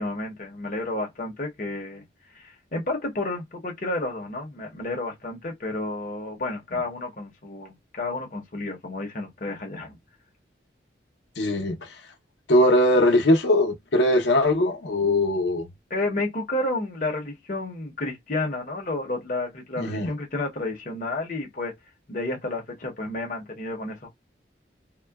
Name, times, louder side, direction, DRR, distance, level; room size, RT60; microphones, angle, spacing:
voice 1, 0.0-2.0 2.3-10.0 15.9-21.7 22.1-24.1, left 2 dB, 45° left, 0.7 m, -31 dB
voice 2, 11.4-12.0 12.5-15.7 19.8-20.1, left 1 dB, 80° left, 0.7 m, -21 dB
3.6 x 2.1 x 2.2 m
head